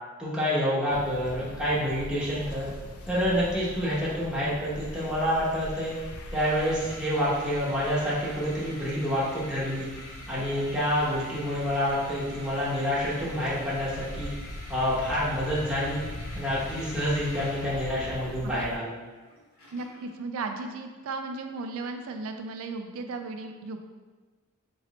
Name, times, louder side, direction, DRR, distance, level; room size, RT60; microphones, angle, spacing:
voice 1, 0.2-2.7 3.1-5.9 6.3-9.9 10.3-14.3 14.7-16.0 16.3-18.9, equal, 5° right, -9 dB, 0.8 m, -28 dB
sound 1, 0.9-18.8, left 1 dB, 80° left, 0.5 m, -42 dB
sound 2, 6.3-20.2, left 1 dB, 65° left, 1.5 m, -46 dB
voice 2, 19.7-23.8, right 3 dB, 65° right, 6 dB, 0.4 m, -35 dB
3.0 x 3.0 x 3.9 m, 1.3 s
head